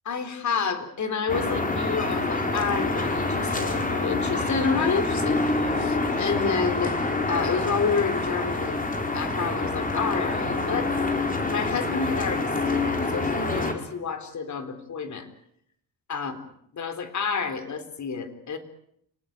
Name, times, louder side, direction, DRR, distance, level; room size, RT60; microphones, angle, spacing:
voice 1, 0.1-8.8 9.1-10.9 11.5-15.3 16.1-16.3 16.7-18.6, left 5 dB, 45° left, 9 dB, 3.9 m, -29 dB
sound 1, 1.3-13.7, left 2 dB, 20° left, 4.5 m, -27 dB
29.5 x 19.0 x 8.9 m, 0.75 s
cardioid pair, 135°, 39 cm